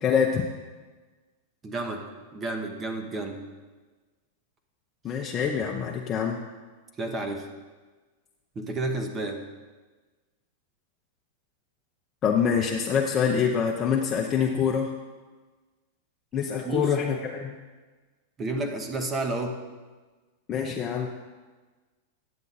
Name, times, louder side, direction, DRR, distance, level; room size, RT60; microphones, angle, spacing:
voice 1, 0.0-0.5 5.0-6.4 12.2-14.9 16.3-17.5 20.5-21.1, left 7 dB, 30° left, 0 dB, 0.8 m, -25 dB
voice 2, 1.6-2.1 2.3-3.5 7.0-7.5 8.5-9.4 16.6-16.9 18.4-19.6, right 2 dB, 25° right, 4 dB, 1.1 m, -31 dB
9.6 x 7.3 x 4.1 m, 1.3 s
hypercardioid pair, 110°, 0 cm